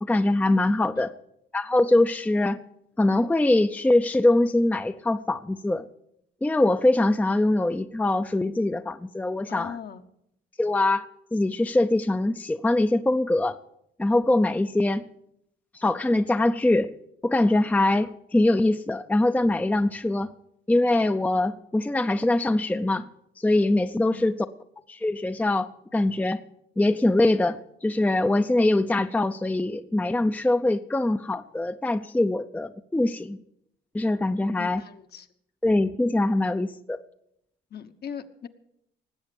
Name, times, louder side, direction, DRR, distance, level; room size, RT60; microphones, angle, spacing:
voice 1, 0.0-1.1 1.5-2.6 3.0-5.8 6.4-9.7 10.6-11.0 11.3-13.6 14.0-15.0 15.8-16.9 17.2-20.3 20.7-23.1 23.4-24.4 24.9-26.4 26.8-33.4 33.9-34.8 35.6-37.0, left 2 dB, 10° left, 10 dB, 0.5 m, -23 dB
voice 2, 9.5-10.0 24.1-24.3 34.6-35.3 37.7-38.5, left 8 dB, 55° left, 8 dB, 1.1 m, -39 dB
18.5 x 8.0 x 7.0 m, 0.75 s
cardioid pair, 90°, 20 cm